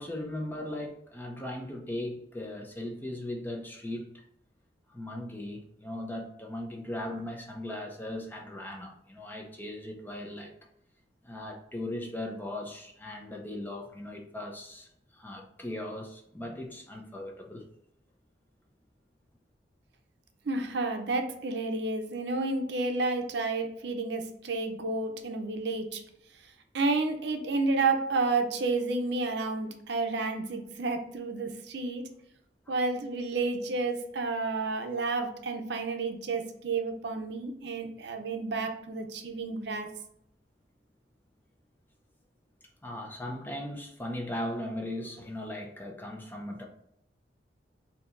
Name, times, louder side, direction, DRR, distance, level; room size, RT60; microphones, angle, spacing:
voice 1, 0.0-4.1 4.9-10.5 11.2-17.7 32.7-32.8 42.8-46.6, left 1 dB, 10° left, 1 dB, 0.5 m, -38 dB
voice 2, 20.5-26.0 26.7-32.1 32.7-39.9, right 3 dB, 70° right, 5 dB, 0.6 m, -31 dB
4.4 x 2.7 x 2.5 m, 0.75 s
head